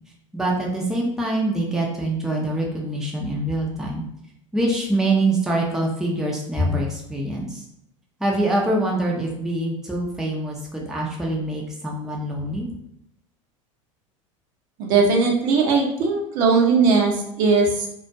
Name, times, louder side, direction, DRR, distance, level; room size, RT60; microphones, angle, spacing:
voice 1, 0.3-4.0 4.5-7.6 8.2-12.7, right 1 dB, 5° right, -2 dB, 0.5 m, -24 dB
voice 2, 14.8-17.9, right 4 dB, 55° right, 0 dB, 0.7 m, -19 dB
2.2 x 2.1 x 2.6 m, 0.79 s
hypercardioid pair, 95°, 17 cm